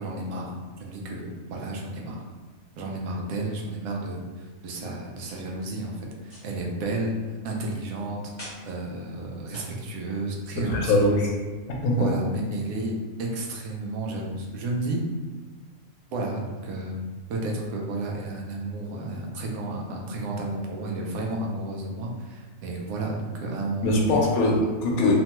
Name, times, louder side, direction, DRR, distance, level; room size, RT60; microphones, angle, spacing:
voice 1, 0.0-2.2 2.8-11.1 12.0-15.1 16.1-17.0 17.3-24.2, right 2 dB, 85° right, 0 dB, 1.0 m, -32 dB
sound 1, 5.3-5.6 6.3-6.5 8.4-8.7 9.5-9.8, equal, 20° left, 1.1 m, -43 dB
voice 2, 10.6-11.3 11.8-12.1 23.8-25.1, left 1 dB, 85° left, -1 dB, 1.1 m, -22 dB
3.0 x 2.2 x 2.9 m, 1.4 s
omnidirectional pair, 1.5 m